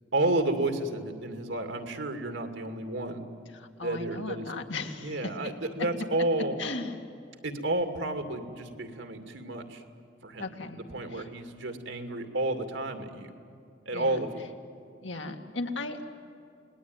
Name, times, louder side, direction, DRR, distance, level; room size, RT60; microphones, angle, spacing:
voice 1, 0.1-3.2 3.8-4.5 5.0-6.6 7.4-9.8 10.2-13.3 13.9-14.4, right 2 dB, 85° right, 6 dB, 2.5 m, -31 dB
voice 2, 3.5-5.2 6.6-7.0 10.4-10.8 11.1-11.2 13.9-14.2 15.0-16.1, left 3 dB, 85° left, 4 dB, 2.3 m, -36 dB
29.0 x 20.0 x 9.5 m, 2.5 s
head